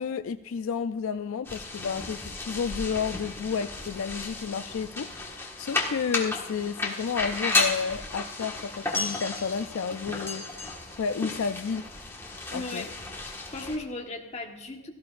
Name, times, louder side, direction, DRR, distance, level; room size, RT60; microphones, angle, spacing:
voice 1, 0.0-5.1 5.6-10.4 11.0-11.9 12.5-12.8, left 6 dB, 70° left, 11 dB, 0.4 m, -31 dB
sound 1, 1.4-13.8, left 3 dB, 10° left, 1.5 m, -33 dB
voice 2, 12.5-12.9 13.2-14.9, left 2 dB, 30° left, 1 dB, 1.3 m, -37 dB
17.0 x 14.5 x 2.5 m, 1.1 s
head